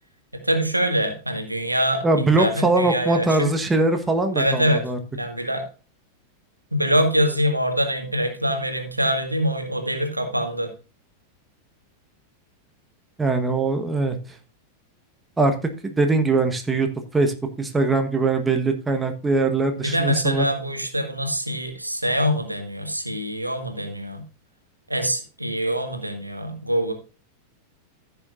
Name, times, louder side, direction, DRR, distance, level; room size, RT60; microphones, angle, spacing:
voice 1, 0.4-3.5 4.3-4.8 5.1-5.7 6.7-10.7 19.8-24.2 24.9-26.9, equal, 85° right, 5 dB, 1.9 m, -24 dB
voice 2, 2.0-5.0 13.2-14.2 15.4-15.6 15.8-20.4, right 3 dB, 10° right, 5 dB, 1.4 m, -21 dB
15.0 x 6.9 x 2.6 m, 0.34 s
figure-of-eight pair, 90°, 0 cm